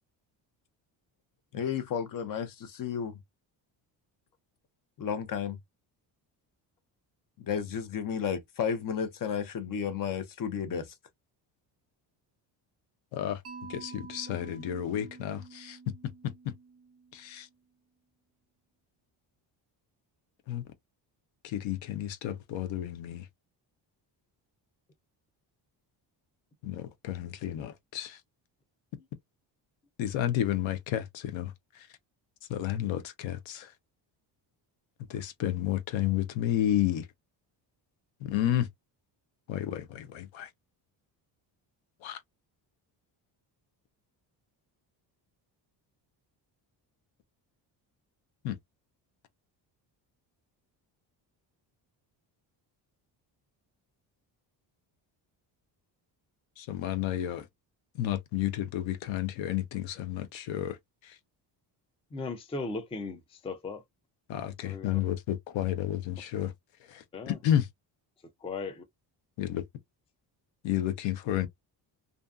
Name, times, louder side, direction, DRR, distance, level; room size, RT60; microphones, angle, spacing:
voice 1, 1.5-3.2 5.0-5.6 7.4-10.9, left 7 dB, 45° left, 0.8 m, -32 dB
Mallet percussion, 13.4-17.5, right 5 dB, 30° right, 0.8 m, -48 dB
voice 2, 13.7-15.8 16.2-16.3 17.1-17.5 20.5-20.6 21.4-23.3 26.6-28.2 30.0-31.5 32.5-33.7 35.1-37.1 38.2-38.7 39.5-40.5 42.0-42.2 48.4-48.6 56.6-57.5 58.0-60.8 61.0-61.1 64.3-66.5 66.9-67.7 69.4-69.6 70.6-71.5, left 11 dB, 80° left, 0.7 m, -31 dB
voice 3, 62.1-63.8 64.6-65.0 67.1-67.4 68.4-68.8, left 3 dB, 15° left, 0.4 m, -37 dB
2.5 x 2.3 x 2.4 m
cardioid pair, 110°, 45 cm